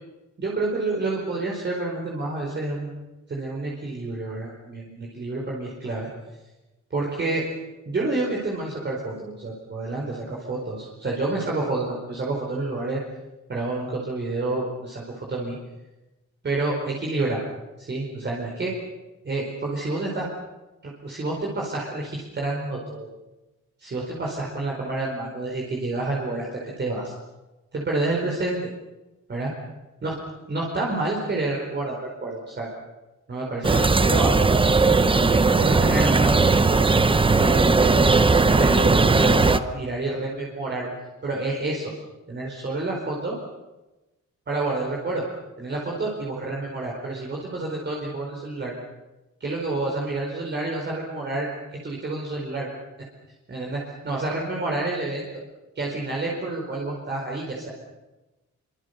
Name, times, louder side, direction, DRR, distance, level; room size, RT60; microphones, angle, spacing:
voice 1, 0.4-2.9 3.3-6.1 6.9-7.4 7.8-13.0 13.5-15.6 16.4-17.4 17.8-18.7 19.2-20.2 20.8-23.1 23.8-27.1 27.7-28.6 29.3-29.5 30.0-30.1 30.5-32.7 33.3-34.4 34.8-36.8 37.3-40.9 41.2-41.9 42.3-43.4 44.5-45.2 45.6-48.7 49.4-51.5 51.8-52.7 53.5-55.3 55.7-57.7, right 2 dB, 35° right, -2 dB, 4.8 m, -29 dB
sound 1, 33.6-39.6, right 3 dB, 15° right, 0.8 m, -18 dB
26.5 x 25.5 x 6.8 m, 1.1 s
wide cardioid pair, 150°, 30 cm